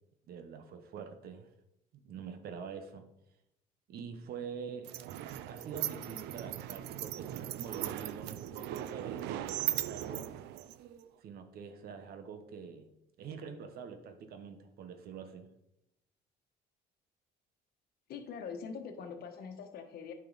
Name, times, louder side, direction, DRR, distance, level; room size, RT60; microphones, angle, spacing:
voice 1, 0.3-1.5 2.0-3.1 3.9-5.0 5.5-10.3 11.2-12.8 13.2-15.5, right 6 dB, 65° right, 8 dB, 1.1 m, -45 dB
sound 1, 4.8-11.1, right 13 dB, 85° right, 0.5 m, -38 dB
voice 2, 18.1-20.1, left 6 dB, 65° left, 6 dB, 1.3 m, -43 dB
9.0 x 5.5 x 4.1 m, 0.83 s
cardioid pair, 110°, 17 cm